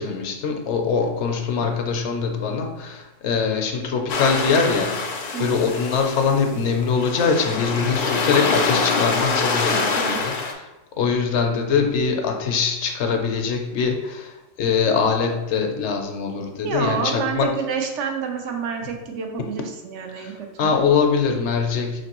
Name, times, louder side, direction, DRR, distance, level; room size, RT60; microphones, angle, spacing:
voice 1, 0.0-10.3 11.0-17.5 20.2-20.3 20.6-22.0, left 5 dB, 75° left, 4 dB, 0.9 m, -23 dB
sound 1, 4.1-10.5, left 4 dB, 60° left, 0.4 m, -25 dB
voice 2, 5.3-5.7 9.7-10.2 16.6-20.8, right 5 dB, 80° right, 3 dB, 1.0 m, -28 dB
5.0 x 3.2 x 2.9 m, 1.0 s
omnidirectional pair, 1.2 m